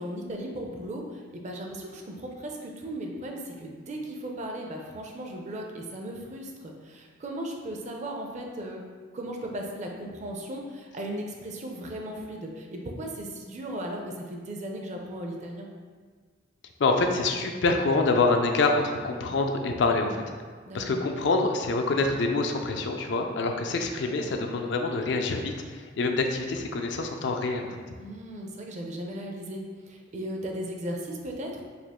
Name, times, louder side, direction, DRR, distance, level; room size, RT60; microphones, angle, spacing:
voice 1, 0.0-8.8 9.1-15.7 20.7-21.0 28.0-31.6, right 1 dB, 40° right, 1 dB, 0.5 m, -36 dB
voice 2, 16.8-20.2 20.7-27.8, left 3 dB, 65° left, 4 dB, 0.4 m, -26 dB
4.9 x 2.4 x 3.5 m, 1.6 s
head